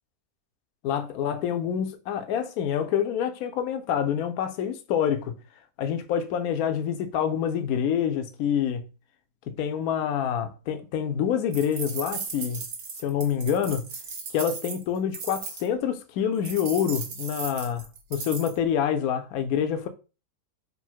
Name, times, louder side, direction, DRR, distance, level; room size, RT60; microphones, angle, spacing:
voice 1, 0.8-5.3 5.8-8.9 9.5-12.6 13.0-13.9 14.3-17.8 18.1-19.9, left 8 dB, 70° left, 1.0 m, -27 dB
sound 1, 11.5-15.7 16.5-18.6, right 5 dB, 70° right, 1.5 m, -36 dB
4.1 x 2.1 x 4.4 m
omnidirectional pair, 1.8 m